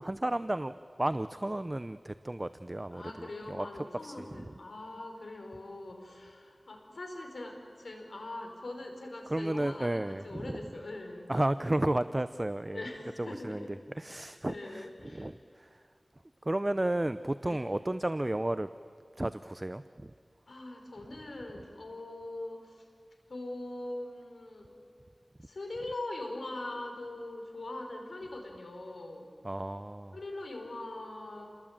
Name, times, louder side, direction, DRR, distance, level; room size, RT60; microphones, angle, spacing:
voice 1, 0.0-3.7 4.0-4.2 9.3-10.6 11.3-12.8 13.2-13.6 13.9-14.8 15.1-15.7 16.5-18.7 19.2-19.8 29.4-30.2, right 1 dB, 25° right, 12 dB, 0.7 m, -32 dB
voice 2, 2.9-11.6 12.7-13.8 14.1-15.3 17.4-17.6 20.5-22.8 23.3-24.8 25.4-29.3 30.1-31.5, left 2 dB, 85° left, 3 dB, 5.0 m, -42 dB
29.0 x 21.0 x 9.0 m, 2.2 s
wide cardioid pair, 60°, 0 cm